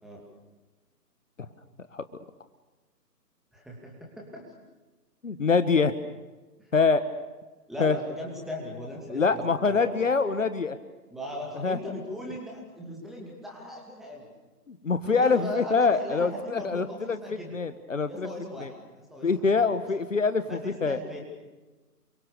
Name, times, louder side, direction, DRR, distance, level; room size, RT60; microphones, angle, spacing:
voice 1, 3.5-4.5 6.6-6.7 7.7-10.0 11.1-14.3 15.1-17.6 18.1-19.8 20.5-21.2, left 1 dB, ahead, -2 dB, 2.6 m, -38 dB
voice 2, 5.2-5.9 6.7-7.0 7.8-8.0 9.1-10.8 11.6-11.8 14.7-18.3 18.6-18.7 19.2-21.0, left 4 dB, 50° left, 12 dB, 1.5 m, -25 dB
28.5 x 24.0 x 6.8 m, 1.2 s
figure-of-eight pair, 145°, 49 cm